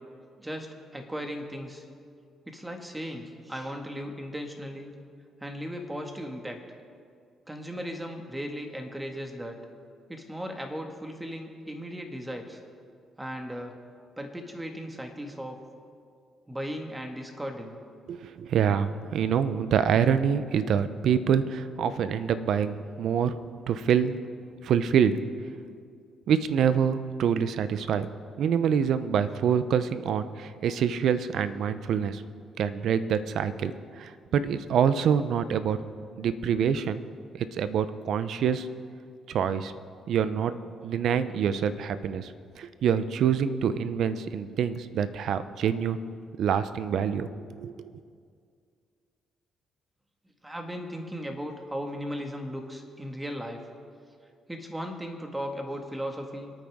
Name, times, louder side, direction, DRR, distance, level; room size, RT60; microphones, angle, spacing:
voice 1, 0.4-1.9 2.5-4.9 5.4-6.6 7.5-9.6 10.1-12.6 13.2-13.8 14.2-15.6 16.5-17.8 50.4-53.6 54.5-56.5, equal, 10° right, 3 dB, 1.8 m, -36 dB
voice 2, 18.1-23.4 23.7-24.2 24.6-25.2 26.3-28.1 28.4-32.2 32.6-35.8 36.2-37.0 37.3-38.7 39.3-39.7 40.1-40.6 40.8-46.0 46.4-47.9, right 8 dB, 70° right, 12 dB, 0.7 m, -26 dB
26.0 x 9.2 x 3.7 m, 2.2 s
cardioid pair, 90°, 0 cm